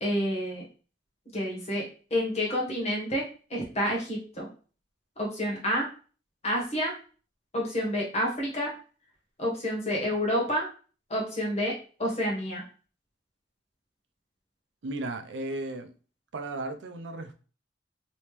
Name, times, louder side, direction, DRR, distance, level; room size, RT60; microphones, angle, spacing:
voice 1, 0.0-0.6 1.3-4.5 5.2-5.9 6.4-6.9 7.5-8.7 9.4-10.7 11.1-11.7 12.0-12.6, equal, 35° left, -2 dB, 1.3 m, -29 dB
voice 2, 14.8-15.9 16.3-17.4, right 2 dB, 75° right, 8 dB, 0.5 m, -35 dB
3.1 x 3.0 x 3.2 m, 0.38 s
head